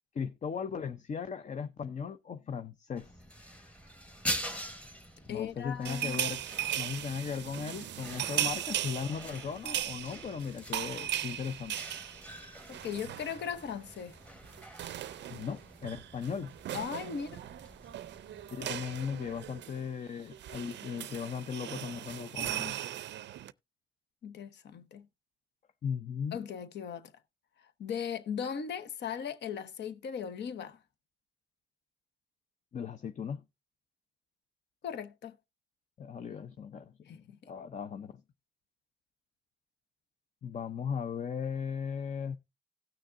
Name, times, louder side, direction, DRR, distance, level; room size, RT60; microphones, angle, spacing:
voice 1, 0.1-3.2 5.3-6.4 6.7-11.7 15.3-16.5 18.5-22.8 25.8-26.4 32.7-33.4 36.0-38.1 40.4-42.4, left 6 dB, 35° left, 0.6 m, -37 dB
sound 1, 2.9-19.6, equal, 5° left, 1.2 m, -45 dB
voice 2, 5.3-6.2 12.7-14.2 16.7-17.4 24.2-25.1 26.3-27.1 27.8-30.8 34.8-35.4 37.0-37.4, left 7 dB, 60° left, 1.0 m, -38 dB
sound 2, 5.8-13.7 14.0-14.2 14.4-23.5, right 12 dB, 65° right, 0.5 m, -38 dB
17.5 x 6.3 x 2.5 m
cardioid pair, 90°, 20 cm